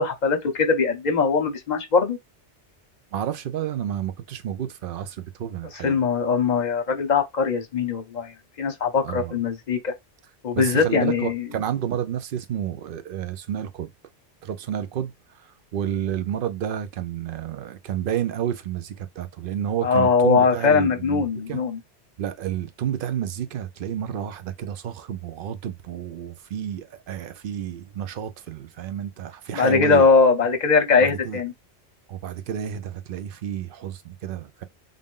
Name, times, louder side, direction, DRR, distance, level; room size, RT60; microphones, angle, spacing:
voice 1, 0.0-2.2 5.8-8.3 8.6-9.9 10.4-11.5 19.8-21.8 29.5-31.5, left 5 dB, 45° left, 0.9 m, -21 dB
voice 2, 3.1-6.0 9.0-9.3 10.6-13.9 14.4-15.1 15.7-21.6 22.2-30.1 31.0-31.4 32.1-34.6, right 9 dB, 60° right, 0.7 m, -30 dB
3.6 x 2.6 x 3.6 m
omnidirectional pair, 1.2 m